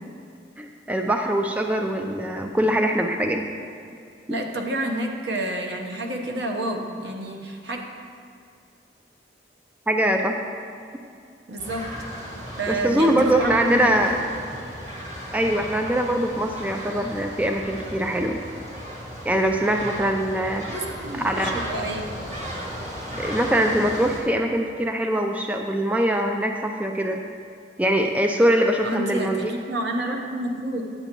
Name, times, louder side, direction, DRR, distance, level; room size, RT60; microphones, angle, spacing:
voice 1, 0.6-3.5 4.3-4.4 9.9-10.4 12.7-14.2 15.3-18.4 19.2-20.7 21.2-21.6 23.2-27.2 27.8-29.5, right 1 dB, 10° right, 3 dB, 0.3 m, -22 dB
voice 2, 4.3-7.8 11.5-11.9 12.6-14.0 20.7-22.4 28.8-30.8, right 1 dB, 75° right, 2 dB, 0.9 m, -29 dB
sound 1, 11.6-24.2, equal, 40° right, 2.0 m, -35 dB
9.9 x 7.7 x 3.0 m, 2.4 s
head